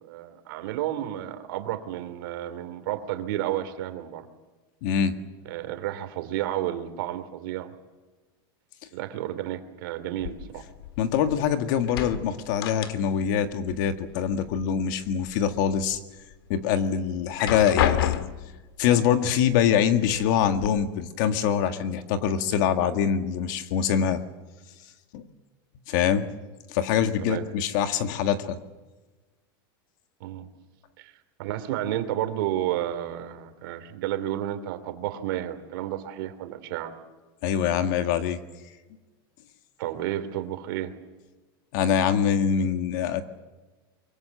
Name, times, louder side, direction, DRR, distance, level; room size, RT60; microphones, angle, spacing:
voice 1, 0.0-4.3 5.4-7.7 8.9-10.6 26.1-26.2 27.2-27.4 30.2-30.5 31.0-31.1 31.4-36.9 39.8-40.9, right 12 dB, 65° right, 9 dB, 2.9 m, -31 dB
voice 2, 4.8-5.2 11.0-16.0 16.5-18.1 18.8-24.2 25.1-25.2 25.9-26.3 26.7-28.6 37.4-38.4 41.7-43.2, left 8 dB, 55° left, 8 dB, 1.8 m, -24 dB
sound 1, 10.2-11.5 11.8-13.4 13.6-14.6 15.0-15.8 16.3-16.4 17.2-18.6 19.5-19.6 20.0-20.7, left 11 dB, 80° left, 1.8 m, -30 dB
24.0 x 23.5 x 7.7 m, 1.2 s
supercardioid pair, 165°, 12 cm